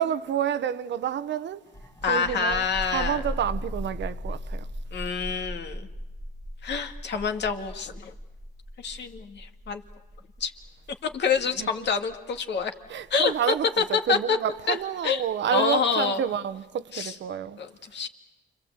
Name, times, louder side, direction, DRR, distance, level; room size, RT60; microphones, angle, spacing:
voice 1, 0.0-1.6 2.1-2.7 2.9-4.7 11.6-11.7 12.9-17.6, right 9 dB, 65° right, 1.0 m, -29 dB
sound 1, 1.7-15.0, equal, 15° left, 1.5 m, -38 dB
voice 2, 2.0-3.2 4.9-5.9 6.6-8.1 8.8-9.8 10.4-10.5 11.0-12.7 13.1-13.3 13.8-14.4 14.7-14.8 15.0-16.2 16.9-17.1 17.6-18.1, left 5 dB, 60° left, 2.1 m, -27 dB
29.5 x 24.0 x 8.0 m
cardioid pair, 90°, 20 cm